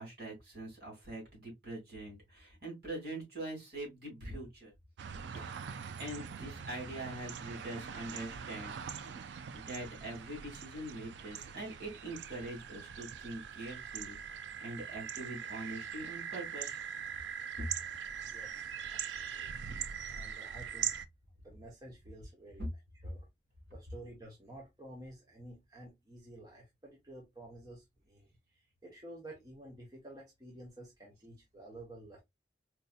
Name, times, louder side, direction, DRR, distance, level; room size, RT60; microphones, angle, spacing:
voice 1, 0.0-4.7 5.3-5.5 6.0-9.1 9.5-14.2 14.6-16.8 17.6-17.7 22.6-22.7, right 1 dB, 60° right, 2.4 m, -43 dB
sound 1, 5.0-21.1, right 8 dB, 75° right, 0.3 m, -42 dB
voice 2, 18.2-19.7 20.1-21.0 21.4-22.7 23.0-23.3 23.7-28.3 28.8-32.2, right 1 dB, 20° right, 0.9 m, -51 dB
4.6 x 2.7 x 2.2 m
head